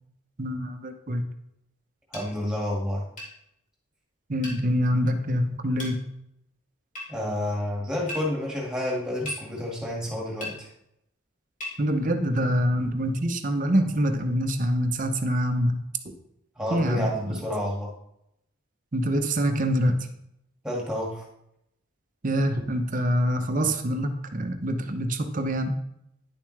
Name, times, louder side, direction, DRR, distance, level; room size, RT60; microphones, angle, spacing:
voice 1, 0.4-1.2 4.3-6.1 11.8-15.8 16.0-16.1 16.7-17.4 18.9-20.1 22.2-25.8, equal, 40° right, 6 dB, 0.8 m, -25 dB
sound 1, 2.1-2.3 3.2-3.3 4.4-4.6 5.8-6.0 6.9-7.1 8.1-8.2 9.2-9.4 10.4-10.6 11.6-11.8, left 1 dB, 40° left, 3.0 m, -36 dB
voice 2, 2.1-3.1 7.1-10.7 16.6-17.9 20.6-21.3, left 1 dB, 5° right, -3 dB, 2.0 m, -29 dB
10.5 x 7.0 x 3.3 m, 0.80 s
head